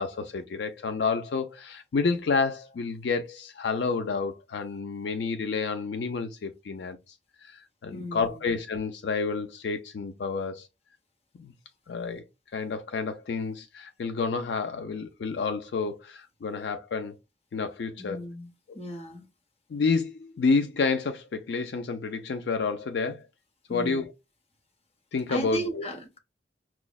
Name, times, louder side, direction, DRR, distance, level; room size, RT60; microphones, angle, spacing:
voice 1, 0.0-7.1 7.4-10.7 11.4-11.5 11.9-12.2 12.5-17.2 17.5-18.2 18.7-18.8 19.7-23.2 23.7-24.1 25.1-25.9, left 4 dB, 70° left, 0.4 m, -29 dB
voice 2, 7.9-8.4 18.0-19.2 23.7-24.0 25.3-26.2, right 1 dB, 35° left, 0.8 m, -36 dB
5.9 x 2.0 x 2.2 m
head